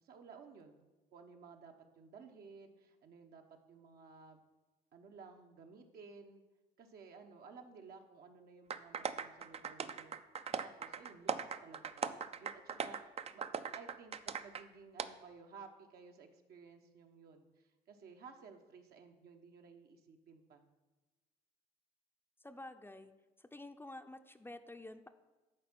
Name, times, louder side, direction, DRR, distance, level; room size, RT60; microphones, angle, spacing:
voice 1, 0.0-3.4 3.7-4.4 4.9-6.4 6.8-10.2 10.6-13.4 13.7-20.6, right 5 dB, 65° right, 4 dB, 1.1 m, -56 dB
sound 1, 8.7-14.6 15.0-15.1, right 6 dB, 35° right, 0.5 m, -40 dB
voice 2, 22.4-23.1 23.4-25.1, left 2 dB, 15° left, 7 dB, 0.6 m, -50 dB
11.0 x 4.3 x 6.1 m, 1.1 s
supercardioid pair, 65°, 17 cm